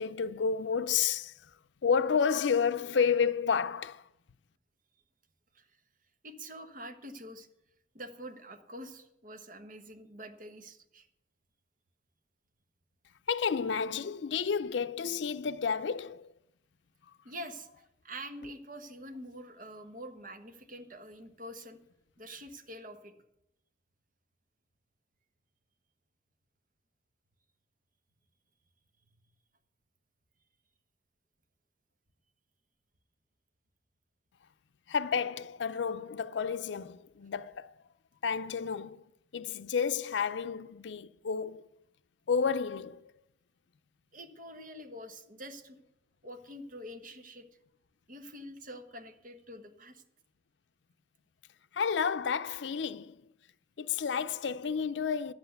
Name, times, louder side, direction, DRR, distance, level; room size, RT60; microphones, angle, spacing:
voice 1, 0.0-1.5 1.8-4.1 13.3-16.3 34.9-37.7 38.2-39.0 39.3-41.7 42.3-43.1 51.7-53.2 53.8-55.3, left 6 dB, 90° left, 0.5 m, -31 dB
voice 2, 6.2-7.5 7.9-11.1 17.2-21.8 22.2-23.1 44.1-45.8 46.2-47.5 48.1-50.0, equal, 50° right, 1.2 m, -46 dB
11.0 x 8.0 x 8.0 m
head